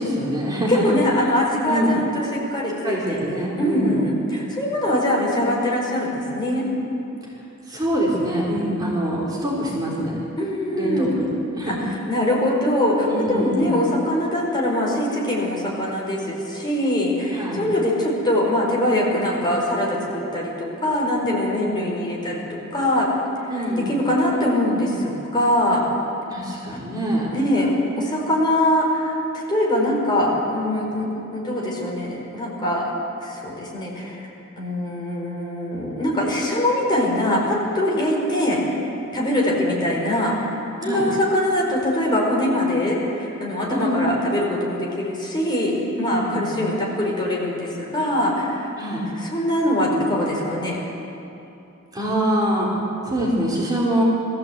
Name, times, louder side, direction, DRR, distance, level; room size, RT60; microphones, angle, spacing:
voice 1, 0.0-0.9 1.6-2.0 2.8-4.0 7.2-7.3 7.7-10.2 10.7-11.8 13.1-13.9 17.3-17.6 23.5-23.9 26.3-27.3 40.8-41.1 43.7-44.1 46.0-46.5 48.8-49.1 51.9-52.7 53.1-54.0, equal, 20° right, -5 dB, 3.9 m, -24 dB
voice 2, 0.7-3.2 3.6-6.7 10.4-11.1 11.6-23.1 23.9-25.8 27.3-29.2 29.5-32.9 33.2-34.3 34.6-38.6 39.1-40.5 40.8-48.7 49.1-50.8, left 1 dB, 20° left, -3 dB, 4.6 m, -22 dB
21.5 x 15.0 x 8.2 m, 2.9 s
head